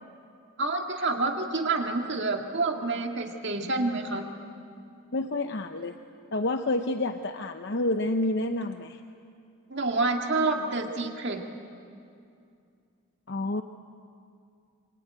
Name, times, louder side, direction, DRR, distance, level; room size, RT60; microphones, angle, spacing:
voice 1, 0.6-4.3 9.7-11.4, right 3 dB, 55° right, 3 dB, 2.0 m, -28 dB
voice 2, 5.1-5.9 6.3-9.0 13.3-13.6, left 2 dB, 50° left, 7 dB, 0.8 m, -29 dB
27.0 x 24.0 x 9.2 m, 2.4 s
head